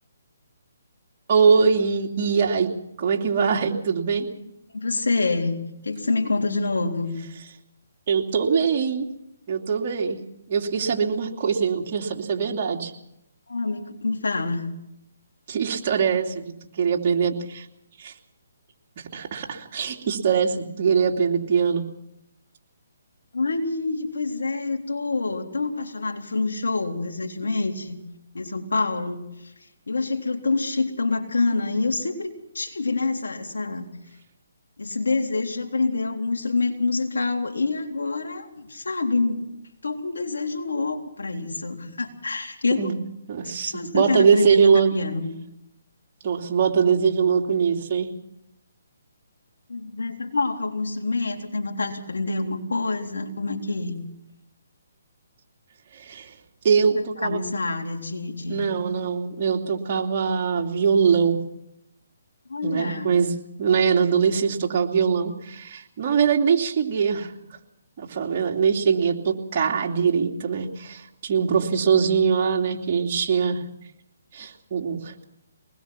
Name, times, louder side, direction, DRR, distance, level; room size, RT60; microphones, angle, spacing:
voice 1, 1.3-2.7 3.0-4.3 8.1-9.1 9.5-10.2 10.5-12.9 15.5-17.6 18.0-18.1 19.1-21.8 42.8-43.0 43.3-44.9 46.2-48.1 55.9-56.3 56.6-57.4 58.5-61.4 62.6-63.3 63.6-67.3 68.0-73.6 74.3-75.3, right 6 dB, 40° right, 0 dB, 2.9 m, -22 dB
voice 2, 4.7-5.6 5.8-7.2 13.5-14.7 23.3-28.0 28.3-33.9 34.8-39.5 39.8-42.9 43.6-45.3 49.7-54.0 57.2-58.7 62.5-63.1, left 3 dB, 85° left, 3 dB, 3.7 m, -27 dB
23.0 x 20.0 x 5.9 m, 0.83 s
hypercardioid pair, 155°, 0 cm